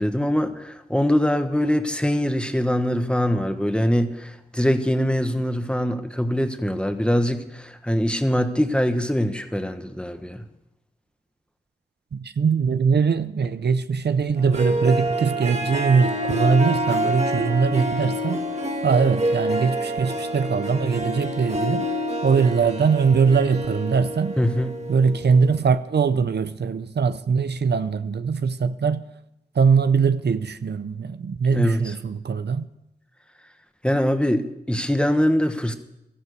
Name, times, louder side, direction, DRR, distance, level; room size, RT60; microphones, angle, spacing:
voice 1, 0.0-10.4 24.4-24.8 31.5-31.9 33.8-35.7, equal, 5° left, 1.4 m, -23 dB
voice 2, 12.1-18.4 18.8-21.9 22.2-24.4 24.9-29.0 29.6-32.7, right 5 dB, 80° right, 0.6 m, -21 dB
Harp, 14.4-25.6, equal, 40° right, 1.7 m, -27 dB
13.5 x 11.5 x 6.7 m
wide cardioid pair, 55°, 17 cm